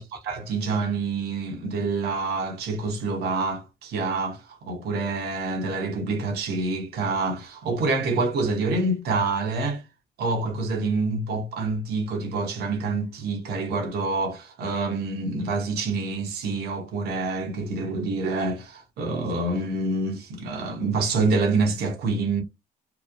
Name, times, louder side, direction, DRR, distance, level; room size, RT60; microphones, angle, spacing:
voice 1, 0.3-9.8 10.2-22.4, right 3 dB, 70° right, 1.0 m, -27 dB
3.0 x 2.0 x 2.5 m
cardioid pair, 110°, 17 cm